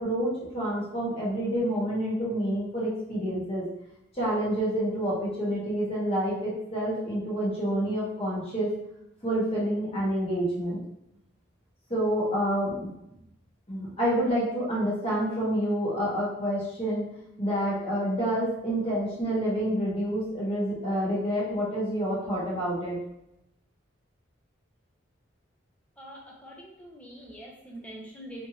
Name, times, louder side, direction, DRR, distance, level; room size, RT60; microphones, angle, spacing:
voice 1, 0.0-3.6 4.1-8.7 9.2-10.8 11.9-12.9 13.7-17.0 17.4-23.0, equal, 30° left, -7 dB, 1.4 m, -28 dB
voice 2, 26.0-28.5, right 1 dB, 5° left, -3 dB, 0.7 m, -44 dB
3.4 x 3.0 x 2.8 m, 0.81 s
head